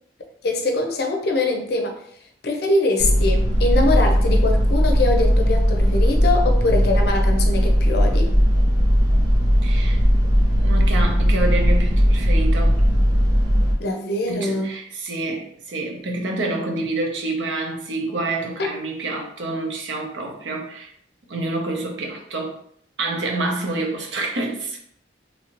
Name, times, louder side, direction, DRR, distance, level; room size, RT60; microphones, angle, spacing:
voice 1, 0.4-2.0 2.4-8.3 13.8-14.7 18.6-18.7, left 2 dB, 60° left, 3 dB, 0.6 m, -23 dB
sound 1, 3.0-13.7, equal, 25° right, 0.9 m, -18 dB
voice 2, 9.6-10.0 10.6-12.8 14.3-20.9 21.3-22.6 23.0-24.8, right 2 dB, 80° right, 1 dB, 0.7 m, -27 dB
3.1 x 2.7 x 2.9 m, 0.65 s
head